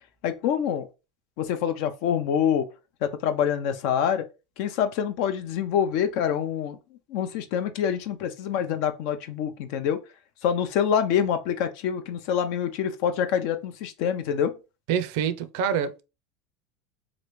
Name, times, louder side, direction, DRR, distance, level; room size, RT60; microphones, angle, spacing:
voice 1, 0.2-0.9 1.4-2.6 3.0-4.2 4.6-6.8 7.1-10.0 10.4-14.5, left 8 dB, 65° left, 0.5 m, -26 dB
voice 2, 14.9-16.0, right 8 dB, 70° right, 0.4 m, -26 dB
3.1 x 2.5 x 3.1 m
supercardioid pair, 120°, 0 cm